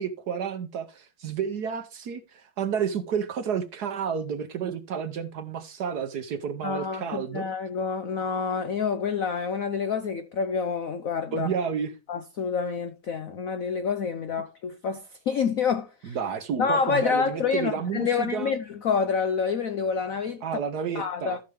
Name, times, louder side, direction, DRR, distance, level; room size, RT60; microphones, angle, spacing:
voice 1, 0.0-7.5 11.3-11.9 16.0-18.5 20.4-21.4, right 7 dB, 60° right, 1.1 m, -31 dB
voice 2, 6.6-11.5 12.1-16.2 16.6-20.4 20.9-21.4, left 6 dB, 70° left, 0.8 m, -28 dB
14.0 x 6.2 x 3.4 m
omnidirectional pair, 2.3 m